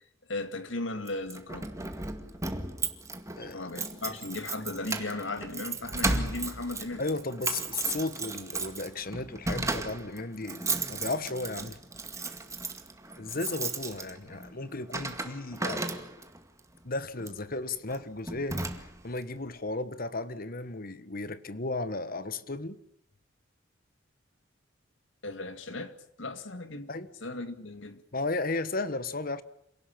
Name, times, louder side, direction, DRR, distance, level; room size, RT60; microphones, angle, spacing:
voice 1, 0.3-1.7 3.5-7.0 25.2-26.9 27.2-28.0, left 2 dB, 70° left, 2.5 m, -36 dB
Keys jangling, 1.1-16.4 17.2-17.4 17.9-18.0 18.3-19.2, right 3 dB, 15° right, 2.0 m, -35 dB
voice 2, 3.4-3.7 7.0-11.8 13.2-15.9 16.8-18.7 19.0-22.8 26.9-27.1 28.1-29.4, left 3 dB, 50° left, 1.5 m, -34 dB
27.5 x 18.0 x 8.8 m
head